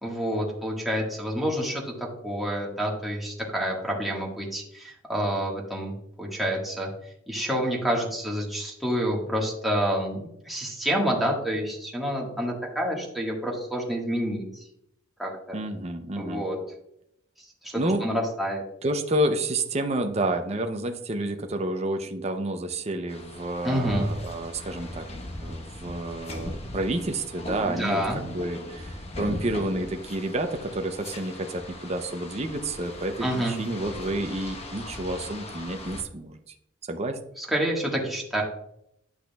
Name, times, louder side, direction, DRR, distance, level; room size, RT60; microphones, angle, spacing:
voice 1, 0.0-6.9 7.3-14.6 15.2-15.6 16.1-16.6 17.6-18.6 23.6-24.1 27.7-28.2 33.2-33.6 37.4-38.4, equal, ahead, -3 dB, 1.5 m, -28 dB
voice 2, 15.5-16.4 17.8-18.0 18.8-25.1 25.4-28.9 29.2-36.3 36.9-37.2, right 1 dB, 30° right, 6 dB, 0.6 m, -29 dB
sound 1, 23.1-36.0, left 1 dB, 30° left, 0.9 m, -39 dB
10.5 x 6.2 x 2.3 m, 0.77 s
head